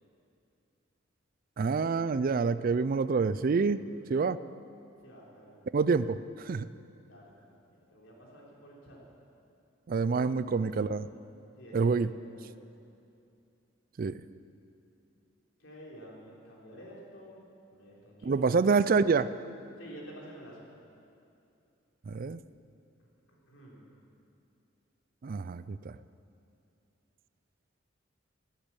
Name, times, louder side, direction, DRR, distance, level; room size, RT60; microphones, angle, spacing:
voice 1, 1.6-3.8 4.1-4.4 5.7-6.7 9.9-11.1 11.7-12.1 14.0-14.2 18.3-19.3 22.1-22.4 25.2-26.0, right 4 dB, 45° right, 16 dB, 0.4 m, -27 dB
voice 2, 5.0-5.7 7.0-9.0 10.3-10.9 11.6-12.6 15.6-17.4 17.7-18.5 19.8-20.7 23.3-23.9, equal, 85° left, -3 dB, 3.5 m, -50 dB
12.0 x 11.5 x 8.4 m, 2.6 s
head